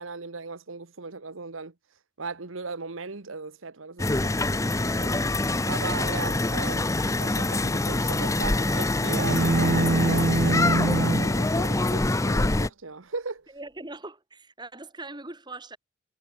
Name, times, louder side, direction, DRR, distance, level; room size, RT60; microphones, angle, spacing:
voice 1, 0.0-1.7 2.2-13.5, right 4 dB, 85° right, 1.3 m, -38 dB
sound 1, 4.0-12.7, left 2 dB, 15° left, 0.6 m, -25 dB
sound 2, 9.1-11.4, right 2 dB, 60° right, 0.8 m, -24 dB
voice 2, 13.5-15.8, right 2 dB, 20° right, 4.3 m, -41 dB
head